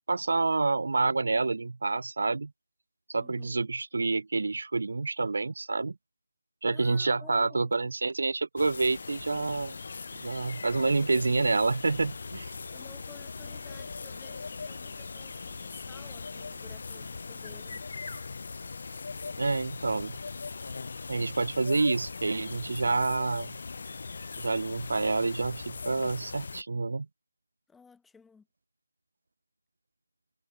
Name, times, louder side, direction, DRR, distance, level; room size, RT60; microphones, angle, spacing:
voice 1, 0.1-2.5 3.1-5.9 6.6-9.8 10.2-12.5 19.4-20.2 21.1-23.6 24.4-27.1, right 3 dB, 60° right, 0.5 m, -28 dB
voice 2, 3.2-3.7 6.7-7.7 12.7-17.8 27.7-28.5, left 5 dB, 5° left, 1.3 m, -55 dB
sound 1, 8.6-26.6, left 4 dB, 50° left, 0.6 m, -40 dB
figure-of-eight pair, 160°, 0 cm